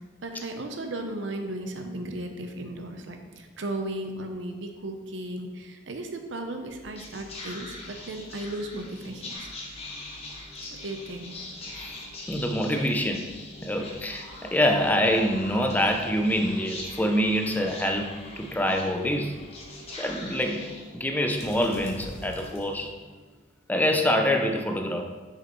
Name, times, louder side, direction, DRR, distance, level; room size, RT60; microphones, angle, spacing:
voice 1, 0.2-9.3 10.8-11.4, right 1 dB, 70° right, 5 dB, 0.7 m, -35 dB
Whispering, 6.6-23.2, left 1 dB, 35° left, 1.1 m, -42 dB
voice 2, 12.3-13.3 13.6-19.4 20.0-22.9 23.7-25.0, equal, 10° left, 4 dB, 0.4 m, -26 dB
6.2 x 4.9 x 3.0 m, 1.3 s
head